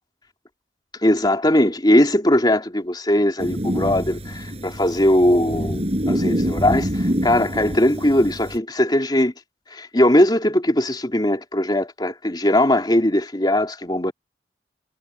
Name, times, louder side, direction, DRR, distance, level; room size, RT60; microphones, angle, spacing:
voice 1, 1.0-9.3 9.7-14.1, left 1 dB, 25° left, 3.3 m, -19 dB
sound 1, 3.4-8.6, equal, 35° right, 6.1 m, -26 dB
head